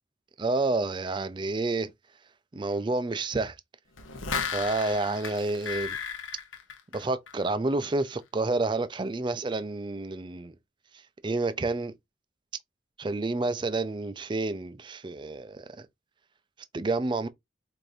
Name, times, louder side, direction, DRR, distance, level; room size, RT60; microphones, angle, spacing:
voice 1, 0.4-1.9 2.5-3.6 4.5-6.0 6.9-10.5 11.2-11.9 13.0-15.9 16.7-17.3, right 3 dB, 25° right, 0.4 m, -29 dB
sound 1, 4.0-7.5 7.8-7.9, left 6 dB, 80° left, 0.8 m, -35 dB
4.6 x 2.6 x 2.6 m
head